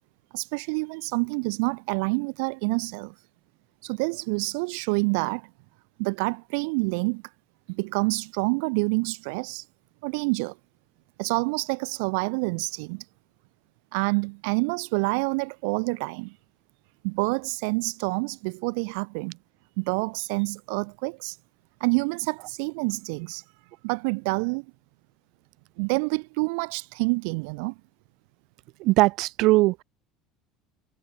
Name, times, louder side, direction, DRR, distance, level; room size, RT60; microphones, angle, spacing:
voice 1, 0.3-3.1 3.8-5.5 6.0-7.2 7.7-9.7 10.0-10.5 11.2-13.1 13.9-16.3 17.0-19.4 19.8-21.4 21.8-23.4 23.8-24.6 25.8-27.7, right 33 dB, 80° right, 5.7 m, -27 dB
voice 2, 28.8-29.8, right 21 dB, 65° right, 7.2 m, -20 dB
supercardioid pair, 125°, 0 cm